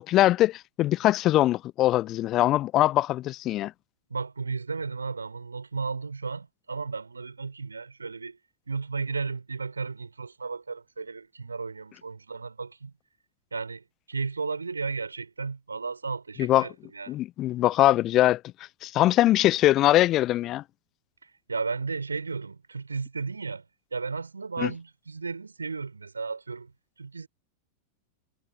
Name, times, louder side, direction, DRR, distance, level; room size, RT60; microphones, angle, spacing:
voice 1, 0.0-3.7 16.4-16.7 17.1-18.4 18.8-20.6 24.6-24.7, left 14 dB, 35° left, 0.8 m, -22 dB
voice 2, 4.1-8.4 8.7-12.9 13.5-17.2 21.2-23.6 23.9-26.7 27.0-27.3, right 4 dB, 75° right, 4.4 m, -34 dB
figure-of-eight pair, 90°, 0 cm